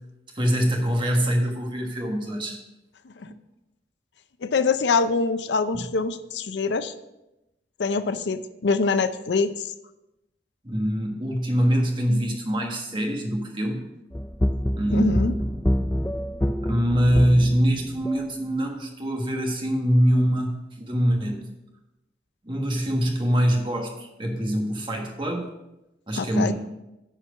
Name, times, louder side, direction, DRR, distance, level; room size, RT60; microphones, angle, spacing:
voice 1, 0.3-2.6 3.2-3.3 5.7-5.9 10.6-13.8 14.8-15.5 16.6-21.5 22.4-25.5 26.1-26.5, equal, 30° right, 2 dB, 1.4 m, -24 dB
voice 2, 4.4-6.9 7.8-9.7 14.9-15.3 26.2-26.5, left 4 dB, 80° left, 11 dB, 0.5 m, -24 dB
sound 1, 14.1-18.2, equal, 10° left, 0.4 m, -26 dB
10.0 x 4.5 x 6.0 m, 0.93 s
head